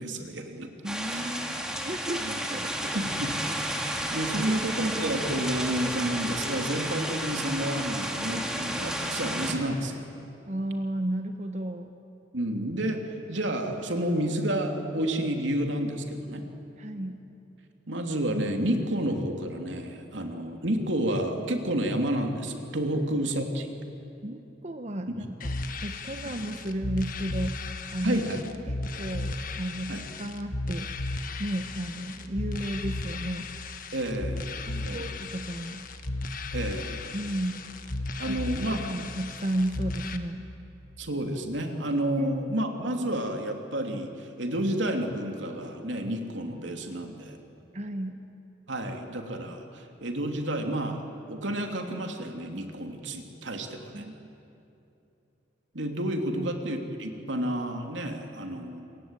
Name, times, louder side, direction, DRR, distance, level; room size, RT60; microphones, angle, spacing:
voice 1, 0.0-0.7 1.1-1.2 2.2-2.4 2.9-10.0 12.3-16.4 17.9-23.7 25.1-25.3 28.0-28.4 29.9-30.1 33.9-34.5 34.8-35.1 36.5-37.0 38.2-38.8 41.0-47.4 48.7-54.1 55.7-58.8, right 1 dB, 80° right, 4 dB, 2.9 m, -30 dB
voice 2, 0.8-3.0 3.8-4.0 4.4-4.6 10.5-11.9 16.8-17.2 22.9-23.0 24.2-25.6 25.8-27.6 27.9-28.2 28.7-30.9 31.4-33.5 34.6-35.8 37.1-37.7 38.2-38.4 38.7-40.5 42.2-42.3 47.7-48.2 53.9-54.3 56.4-56.5, right 1 dB, 40° right, 6 dB, 1.1 m, -33 dB
sound 1, 0.9-9.5, equal, 5° right, 2.3 m, -32 dB
sound 2, 25.4-40.2, left 2 dB, 45° left, 1.4 m, -35 dB
27.5 x 23.0 x 9.0 m, 2.8 s
head